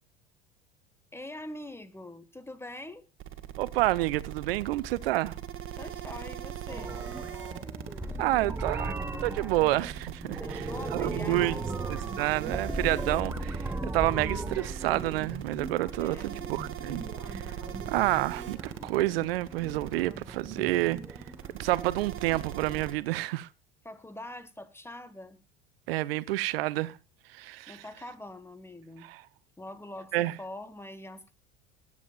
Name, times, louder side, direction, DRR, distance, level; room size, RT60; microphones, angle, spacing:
voice 1, 1.1-3.0 5.7-7.0 10.4-12.1 15.7-16.4 23.8-25.4 27.7-29.1 29.6-31.3, left 1 dB, 10° left, 1.5 m, -44 dB
sound 1, 3.2-22.9, right 10 dB, 40° right, 1.8 m, -40 dB
voice 2, 3.6-5.4 8.2-11.6 11.9-17.4 17.9-21.0 21.6-23.5 25.9-27.0 27.3-27.8 29.1-29.2 30.1-30.3, right 17 dB, 70° right, 0.8 m, -29 dB
sound 2, 6.7-23.1, right 2 dB, 5° right, 1.2 m, -38 dB
21.5 x 9.7 x 2.4 m
hypercardioid pair, 75°, 30 cm